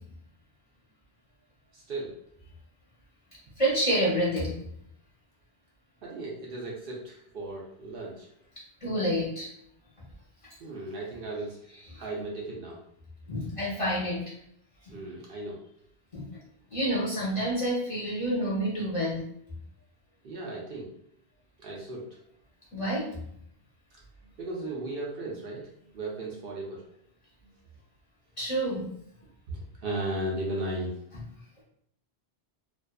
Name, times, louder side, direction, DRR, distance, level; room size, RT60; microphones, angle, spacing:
voice 1, 1.7-2.2 6.0-8.3 10.6-11.6 11.9-12.8 14.9-15.6 20.2-20.9 21.6-22.0 24.4-26.8 27.4-27.6 29.5-30.9, right 2 dB, 65° right, -3 dB, 0.7 m, -36 dB
voice 2, 3.6-4.5 8.8-9.5 11.9-12.0 13.3-14.2 14.8-14.9 16.1-16.2 16.7-19.2 22.7-23.1 28.4-28.9, right 1 dB, 35° left, -8 dB, 0.8 m, -28 dB
2.5 x 2.3 x 2.2 m, 0.70 s
omnidirectional pair, 1.1 m